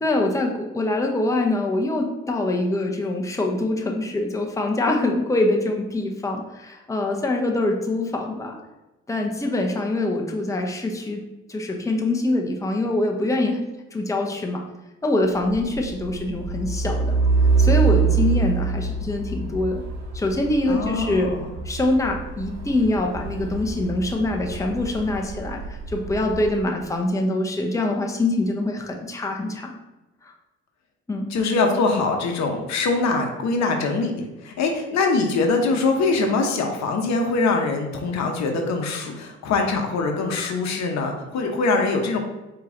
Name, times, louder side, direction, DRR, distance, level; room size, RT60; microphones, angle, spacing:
voice 1, 0.0-8.6 9.1-13.6 13.9-14.6 15.0-17.2 17.6-19.8 20.1-21.3 21.6-25.6 25.9-29.8 31.1-31.3, left 2 dB, 10° left, 1 dB, 0.8 m, -24 dB
Truck, 15.3-26.7, right 4 dB, 60° right, 1.5 m, -25 dB
voice 2, 20.7-21.6 31.3-42.2, left 3 dB, 60° left, 3 dB, 0.9 m, -23 dB
4.7 x 3.0 x 3.8 m, 1.0 s
supercardioid pair, 60°, 31 cm